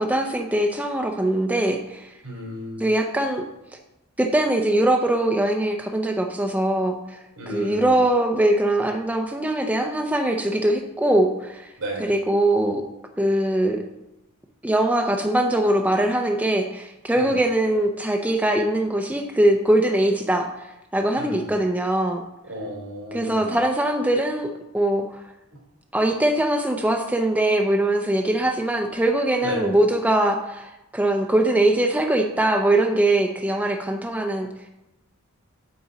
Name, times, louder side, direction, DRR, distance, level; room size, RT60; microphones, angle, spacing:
voice 1, 0.0-2.1 2.8-3.4 4.2-7.2 7.5-11.7 12.0-12.8 13.2-13.8 14.6-22.2 23.1-25.2 25.9-34.5, right 1 dB, 5° right, 3 dB, 0.5 m, -22 dB
voice 2, 2.2-2.8 7.4-7.9 11.8-12.1 17.2-17.3 21.1-21.5 22.5-23.5 29.4-29.7, right 1 dB, 65° right, -3 dB, 3.9 m, -33 dB
8.6 x 8.3 x 4.1 m, 0.92 s
head